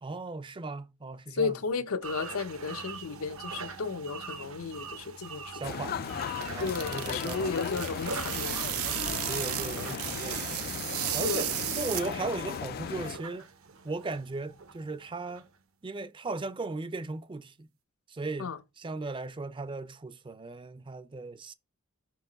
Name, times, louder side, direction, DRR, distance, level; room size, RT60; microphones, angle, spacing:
voice 1, 0.0-1.6 5.5-6.0 6.5-7.7 9.1-10.6 11.1-11.5 11.8-13.5 13.8-15.5 15.8-17.7 18.1-21.5, right 3 dB, 25° right, 0.5 m, -37 dB
voice 2, 1.3-5.6 6.6-8.7 11.2-11.5 18.4-18.6, left 4 dB, 85° left, 0.7 m, -34 dB
sound 1, 2.0-15.6, right 4 dB, 70° right, 1.0 m, -44 dB
sound 2, 5.6-13.2, left 7 dB, 45° left, 0.3 m, -37 dB
sound 3, 6.0-12.4, right 14 dB, 90° right, 0.5 m, -35 dB
5.9 x 4.6 x 4.0 m
head